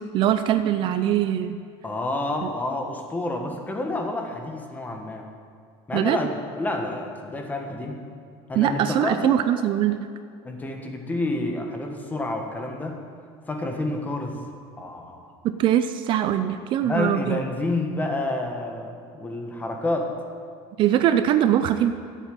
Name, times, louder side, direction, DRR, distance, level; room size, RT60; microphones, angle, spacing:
voice 1, 0.1-1.6 5.9-6.2 8.5-10.0 15.4-17.4 20.8-21.9, right 11 dB, 45° right, 10 dB, 0.6 m, -22 dB
voice 2, 1.8-5.3 5.9-8.0 8.5-9.4 10.4-13.0 13.5-14.4 14.8-15.3 16.8-20.1, left 2 dB, 15° left, 3 dB, 1.4 m, -29 dB
11.5 x 8.2 x 9.1 m, 2.3 s
cardioid pair, 150°, 11 cm